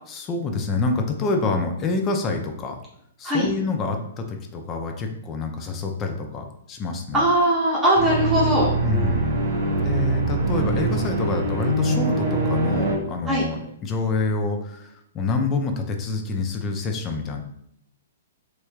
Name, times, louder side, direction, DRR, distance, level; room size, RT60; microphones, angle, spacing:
voice 1, 0.1-2.8 3.2-7.2 8.8-9.4 9.7-17.4, left 3 dB, 25° left, 4 dB, 0.5 m, -27 dB
voice 2, 7.1-8.7 13.3-13.5, right 1 dB, 15° right, -6 dB, 0.9 m, -20 dB
sound 1, 8.0-13.0, right 2 dB, 50° right, 0.9 m, -23 dB
3.2 x 3.1 x 2.3 m, 0.74 s
figure-of-eight pair, 115°, 0 cm